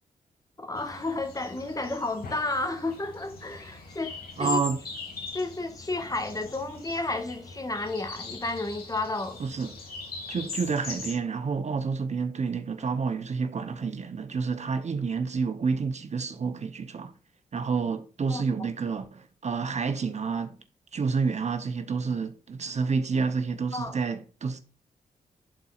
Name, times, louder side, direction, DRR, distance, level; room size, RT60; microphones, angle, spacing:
voice 1, 0.6-4.6 5.3-9.4 18.3-18.4 23.7-24.0, left 2 dB, 25° left, 1.5 m, -32 dB
sound 1, 0.8-11.1, left 4 dB, 85° left, 2.3 m, -41 dB
voice 2, 4.4-4.8 9.4-9.8 10.3-17.1 17.5-20.6 20.9-24.6, right 5 dB, 50° right, 0.8 m, -29 dB
11.5 x 4.1 x 2.4 m
cardioid pair, 65°, 15 cm